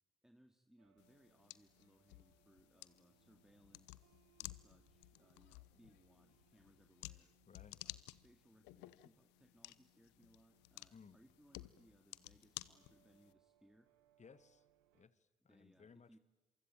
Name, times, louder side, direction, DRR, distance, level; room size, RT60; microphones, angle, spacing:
voice 1, 0.2-7.3 7.8-13.9 15.4-16.2, equal, 5° right, 7 dB, 2.2 m, -69 dB
sound 1, 0.8-15.1, right 14 dB, 80° right, 1.2 m, -77 dB
sound 2, 1.0-13.3, left 19 dB, 75° left, 0.8 m, -55 dB
voice 2, 7.5-7.8 10.9-11.2 14.2-14.6 14.9-16.2, left 5 dB, 40° left, 16 dB, 1.6 m, -62 dB
27.5 x 24.0 x 9.0 m, 1.1 s
hypercardioid pair, 45°, 18 cm